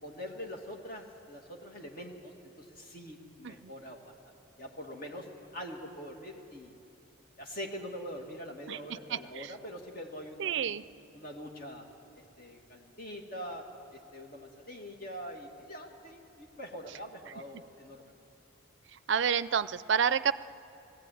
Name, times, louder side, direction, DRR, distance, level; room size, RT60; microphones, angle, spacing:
voice 1, 0.0-5.3 5.5-6.7 7.4-10.8 11.1-11.8 12.4-13.6 13.9-18.1, equal, 45° left, 1 dB, 2.2 m, -44 dB
voice 2, 8.7-9.5 10.4-10.8 18.9-20.3, right 7 dB, 60° right, 15 dB, 0.4 m, -30 dB
19.5 x 15.0 x 9.2 m, 2.6 s
head